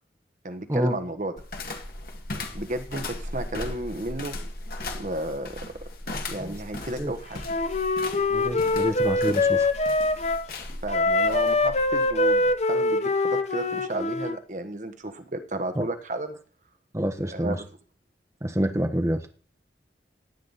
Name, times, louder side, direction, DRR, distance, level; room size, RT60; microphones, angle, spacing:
voice 1, 0.4-1.3 2.5-4.4 5.0-5.6 6.3-7.4 10.8-16.4 17.2-17.7, right 1 dB, 45° right, 9 dB, 1.2 m, -33 dB
sound 1, 1.4-12.6, left 2 dB, 55° left, 2.0 m, -37 dB
Wind instrument woodwind instrument, 7.4-10.4 10.9-14.4, left 2 dB, 40° left, 0.9 m, -24 dB
voice 2, 8.3-9.7 15.8-15.9 16.9-17.6 18.4-19.2, equal, 15° right, 5 dB, 1.1 m, -27 dB
16.5 x 9.5 x 4.1 m, 0.42 s
head